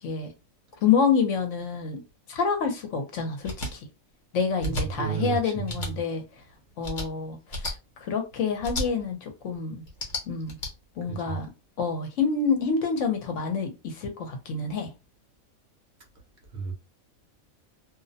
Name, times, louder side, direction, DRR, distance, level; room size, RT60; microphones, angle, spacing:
voice 1, 0.0-0.3 0.8-2.0 2.3-3.9 4.3-6.2 6.8-9.8 10.3-10.6 11.0-11.5 11.8-14.9, left 5 dB, 65° left, 0.9 m, -27 dB
sound 1, 3.4-3.7 4.6-4.8 5.6-5.9 6.8-7.1 7.5-7.7 8.6-8.9 9.9-10.7, left 1 dB, 40° left, 0.9 m, -32 dB
voice 2, 4.5-5.9 11.1-11.4 16.5-16.7, right 6 dB, 60° right, 0.9 m, -33 dB
2.5 x 2.0 x 2.6 m
omnidirectional pair, 1.4 m